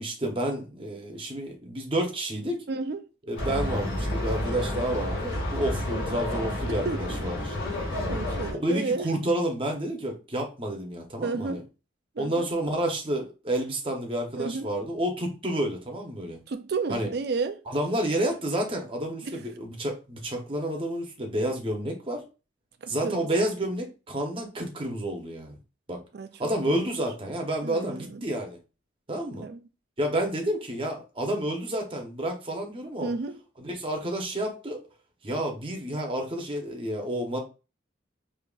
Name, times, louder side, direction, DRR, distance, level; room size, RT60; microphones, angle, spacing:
voice 1, 0.0-2.6 3.3-7.6 8.5-11.6 12.2-16.4 16.9-17.1 17.7-22.2 22.9-25.6 25.9-26.0 26.4-28.6 29.1-29.5 30.0-33.1 33.6-34.8 35.2-37.4, right 1 dB, 25° right, 0.8 m, -30 dB
voice 2, 2.7-3.0 5.9-6.0 6.7-7.0 8.1-9.1 11.2-11.6 12.2-12.5 14.4-14.7 16.5-17.6 19.2-19.4 22.8-23.3 26.1-26.3 26.7-26.8 27.6-28.3 29.4-29.6 33.0-33.4, right 4 dB, 55° right, 0.4 m, -32 dB
sound 1, 3.4-8.5, left 1 dB, 65° left, 2.3 m, -30 dB
5.2 x 2.8 x 2.4 m
head